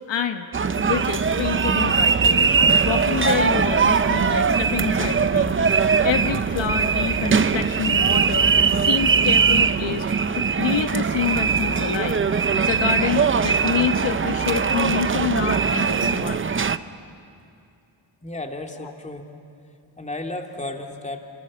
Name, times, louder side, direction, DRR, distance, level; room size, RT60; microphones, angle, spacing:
voice 1, 0.1-0.5 0.7-2.5 2.8-8.5 8.8-10.1 10.4-12.2 12.5-16.5, left 9 dB, 70° left, 7 dB, 1.2 m, -27 dB
sound 1, 0.5-16.8, right 5 dB, 25° right, 0.7 m, -21 dB
sound 2, 1.3-9.1, right 5 dB, 45° right, 2.3 m, -34 dB
voice 2, 18.2-19.3 20.0-21.2, left 2 dB, 15° left, 3 dB, 2.4 m, -33 dB
29.0 x 27.5 x 7.4 m, 2.5 s
wide cardioid pair, 115°, 46 cm